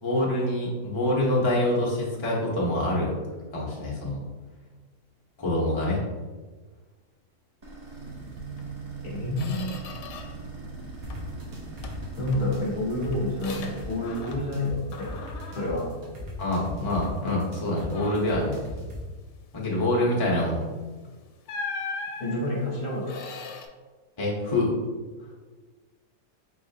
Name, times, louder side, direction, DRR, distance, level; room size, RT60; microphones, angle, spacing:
voice 1, 0.0-3.1 3.5-4.2 5.4-6.0 16.4-18.6 19.5-20.6 24.2-24.7, left 1 dB, 25° left, -4 dB, 0.8 m, -25 dB
sound 1, 7.6-14.2, right 3 dB, 40° right, 0.6 m, -40 dB
Squeak, 8.6-8.7 9.1-10.5 10.8-11.4 11.8-14.6 14.9-16.8 17.2-17.4 17.8-18.5 20.6-20.8 21.5-23.7, left 4 dB, 85° left, 1.2 m, -40 dB
voice 2, 9.0-9.8 12.2-15.1 15.5-15.8 22.2-23.2, left 1 dB, 55° left, -3 dB, 1.3 m, -29 dB
sound 2, 11.0-19.0, left 1 dB, 75° right, 1.5 m, -39 dB
4.2 x 4.2 x 2.7 m, 1.3 s
omnidirectional pair, 1.7 m